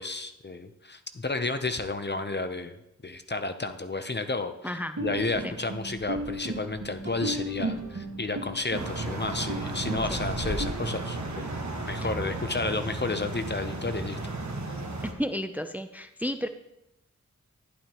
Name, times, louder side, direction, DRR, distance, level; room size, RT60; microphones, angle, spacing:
voice 1, 0.0-2.8 3.0-14.3, left 3 dB, 35° left, 9 dB, 0.8 m, -32 dB
voice 2, 4.6-5.0 5.4-5.5 10.1-10.2 15.0-16.5, equal, 5° right, 9 dB, 0.6 m, -32 dB
sound 1, 5.0-10.7, right 2 dB, 80° right, 2.3 m, -35 dB
sound 2, 8.7-15.1, right 2 dB, 65° right, 1.4 m, -34 dB
11.5 x 11.0 x 3.0 m, 0.85 s
wide cardioid pair, 50°, 30 cm